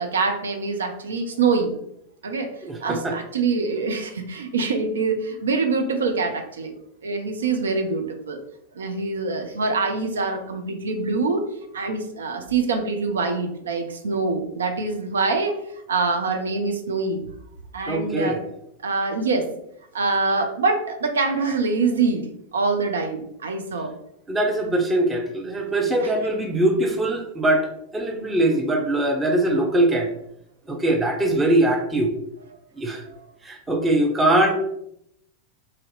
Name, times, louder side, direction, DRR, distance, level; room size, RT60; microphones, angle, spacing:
voice 1, 0.0-1.7 2.2-2.5 2.8-6.7 7.0-8.4 8.7-11.4 11.7-15.5 15.9-17.2 17.7-18.4 18.8-19.5 19.9-23.9 26.0-26.1, right 4 dB, 70° right, 5 dB, 0.6 m, -24 dB
voice 2, 2.6-3.1 17.9-18.4 24.3-30.1 30.7-32.1 32.8-33.0 33.4-34.5, right 1 dB, 15° right, 2 dB, 0.7 m, -22 dB
3.2 x 2.8 x 3.8 m, 0.75 s
figure-of-eight pair, 90°, 0 cm